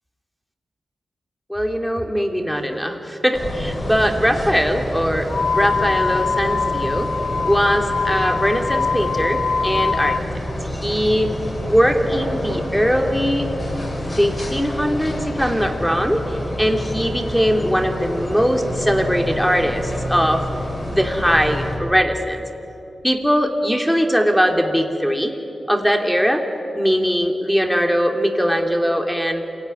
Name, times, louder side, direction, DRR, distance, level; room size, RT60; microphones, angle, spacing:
voice 1, 1.5-5.3 5.5-7.1 7.4-10.2 10.7-11.3 11.7-13.5 14.1-20.4 20.9-22.4 23.0-25.4 25.7-26.4 26.7-29.4, equal, ahead, 4 dB, 2.8 m, -20 dB
sound 1, 3.3-21.8, left 1 dB, 40° left, 6.1 m, -28 dB
sound 2, 5.3-10.2, left 5 dB, 70° left, 0.6 m, -23 dB
27.0 x 17.5 x 9.9 m, 3.0 s
cardioid pair, 60°, 0 cm